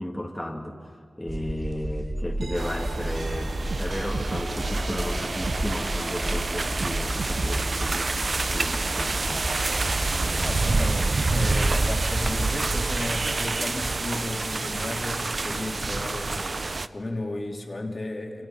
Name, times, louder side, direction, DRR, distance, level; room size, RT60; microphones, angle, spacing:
voice 1, 0.0-9.5, left 1 dB, 10° left, -1 dB, 2.6 m, -34 dB
sound 1, 1.3-12.4, right 1 dB, 15° right, 2.4 m, -32 dB
sound 2, 2.4-6.5 6.8-7.9, right 4 dB, 85° right, 1.2 m, -38 dB
sound 3, 2.5-16.9, right 3 dB, 50° right, 0.7 m, -28 dB
voice 2, 10.4-16.6 16.9-18.5, left 2 dB, 40° left, 1 dB, 3.2 m, -34 dB
28.5 x 27.0 x 5.8 m, 2.3 s
wide cardioid pair, 75°, 0 cm